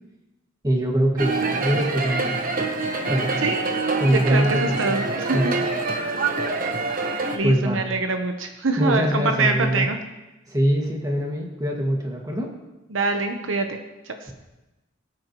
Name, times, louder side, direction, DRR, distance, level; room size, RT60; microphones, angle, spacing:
voice 1, 0.6-2.7 3.1-3.4 4.0-5.0 5.3-5.7 7.4-7.8 8.8-9.9 10.5-12.5 14.3-14.4, right 1 dB, 20° right, -1 dB, 2.1 m, -23 dB
sound 1, 1.2-7.4, right 3 dB, 45° right, 1.1 m, -26 dB
voice 2, 4.0-5.5 7.3-10.0 12.9-13.8 14.1-14.2, right 3 dB, 75° right, 5 dB, 1.0 m, -24 dB
21.0 x 8.9 x 3.1 m, 1.0 s
head